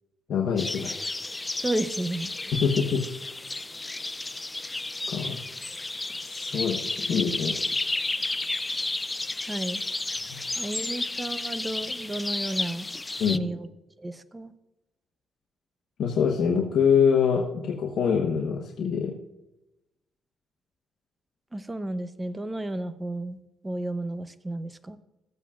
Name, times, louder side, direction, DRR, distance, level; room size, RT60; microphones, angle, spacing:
voice 1, 0.3-1.0 2.5-3.0 5.1-5.4 6.2-6.8 7.1-7.6 13.2-13.4 16.0-19.1, left 6 dB, 65° left, -1 dB, 1.1 m, -24 dB
sound 1, 0.6-13.4, left 2 dB, 15° left, 0.3 m, -32 dB
voice 2, 1.6-2.5 9.5-9.8 10.6-12.9 13.1-13.7 14.0-14.5 21.5-23.4 23.6-25.0, right 1 dB, 15° right, 12 dB, 0.7 m, -32 dB
14.5 x 8.2 x 2.4 m, 0.97 s
cardioid pair, 90°, 0 cm